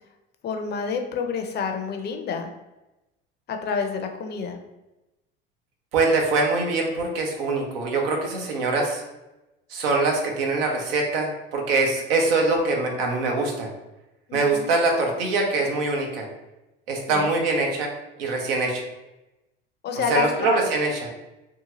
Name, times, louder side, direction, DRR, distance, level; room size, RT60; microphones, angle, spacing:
voice 1, 0.4-2.5 3.5-4.6 14.3-14.7 17.1-17.3 19.8-20.6, left 6 dB, 35° left, 5 dB, 0.5 m, -28 dB
voice 2, 5.9-9.0 9.7-13.7 14.3-16.3 16.9-17.9 18.2-18.8 20.1-21.1, right 3 dB, 85° right, 1 dB, 0.7 m, -23 dB
2.8 x 2.3 x 2.9 m, 0.98 s
hypercardioid pair, 70°, 29 cm